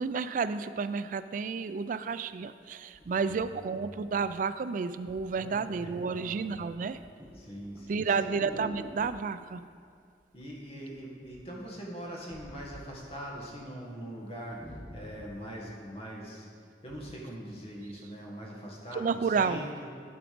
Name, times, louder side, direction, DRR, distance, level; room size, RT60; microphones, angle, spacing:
voice 1, 0.0-7.0 7.9-9.6 18.9-19.6, right 5 dB, 45° right, 12 dB, 0.3 m, -31 dB
sound 1, 2.3-2.4 2.9-4.4 5.1-5.3 5.6-6.1 6.4-9.3 10.4-10.9 11.2-13.5 13.8-13.9 14.3-15.4 16.0-16.1, equal, 10° right, 1.0 m, -47 dB
voice 2, 3.1-3.7 5.3-6.4 7.3-8.3 10.3-14.6 14.9-16.5 16.8-19.9, equal, 35° left, -3 dB, 1.6 m, -42 dB
11.0 x 5.0 x 5.1 m, 2.2 s
head